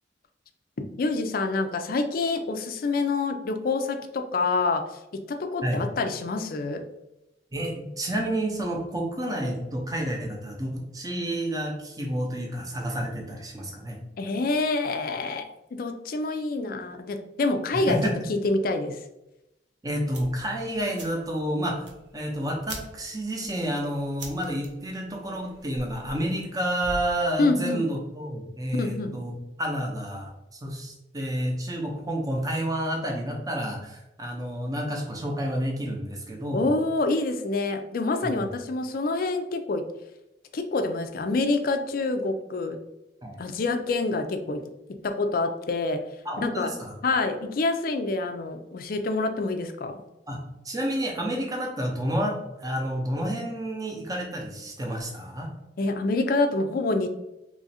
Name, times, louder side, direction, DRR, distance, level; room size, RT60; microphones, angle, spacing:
voice 1, 1.0-4.8 5.1-6.8 14.2-18.0 18.3-19.0 27.4-27.8 28.7-29.1 36.5-39.8 40.5-42.8 43.4-44.6 45.0-46.0 46.4-46.7 47.0-50.0 55.8-57.1, left 3 dB, 50° left, 7 dB, 0.4 m, -27 dB
voice 2, 7.5-14.0 17.9-18.2 19.8-29.3 29.6-36.7 38.2-38.5 43.2-43.4 46.2-46.9 50.3-50.4 50.6-55.5, right 1 dB, 20° right, 0 dB, 0.6 m, -30 dB
sound 1, 20.1-27.2, right 2 dB, 70° right, 0.7 m, -44 dB
3.1 x 2.5 x 4.1 m, 0.90 s
head